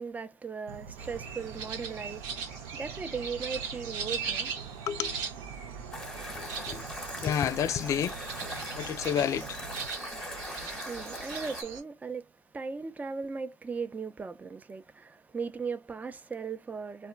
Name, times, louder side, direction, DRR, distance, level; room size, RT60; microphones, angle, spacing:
voice 1, 0.0-2.4 2.8-4.5 10.8-12.3 12.5-17.1, right 5 dB, 20° right, 0.5 m, -37 dB
Insect / Frog, 0.7-9.9, right 7 dB, 90° right, 0.5 m, -46 dB
sound 1, 1.0-11.8, right 6 dB, 70° right, 1.0 m, -39 dB
voice 2, 4.9-5.2 6.4-6.9 7.2-8.2 8.8-9.6, left 9 dB, 40° left, 0.3 m, -30 dB
sound 2, 5.9-11.6, left 1 dB, 10° left, 1.0 m, -41 dB
2.2 x 2.1 x 3.7 m
supercardioid pair, 90°, 8 cm